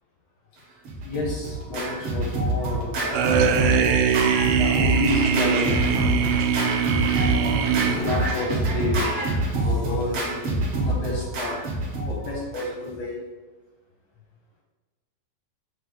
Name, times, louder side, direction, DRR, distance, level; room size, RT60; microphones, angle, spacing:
Scratching (performance technique), 0.8-12.9, right 2 dB, 60° right, 1.5 m, -26 dB
voice 1, 1.0-3.4 4.0-5.8 7.3-9.1 9.5-11.6 12.0-13.2, left 3 dB, 75° left, -2 dB, 1.5 m, -31 dB
sound 1, 3.1-8.4, right 7 dB, 80° right, 2.1 m, -22 dB
7.8 x 3.4 x 4.1 m, 1.2 s
omnidirectional pair, 3.9 m